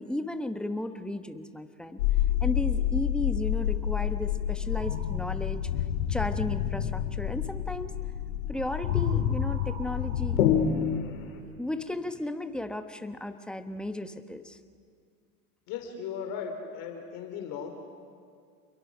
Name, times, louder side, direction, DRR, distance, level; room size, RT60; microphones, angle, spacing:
voice 1, 0.0-2.0 2.4-5.7 6.1-7.9 8.5-10.4 11.4-14.6, left 1 dB, ahead, 8 dB, 1.0 m, -34 dB
sound 1, 2.0-11.4, left 10 dB, 80° left, 2.9 m, -28 dB
sound 2, 4.7-5.2 8.5-11.3, right 6 dB, 75° right, 2.3 m, -48 dB
voice 2, 15.7-17.7, left 7 dB, 50° left, 4 dB, 3.4 m, -37 dB
28.5 x 22.5 x 6.2 m, 2.2 s
hypercardioid pair, 115°, 42 cm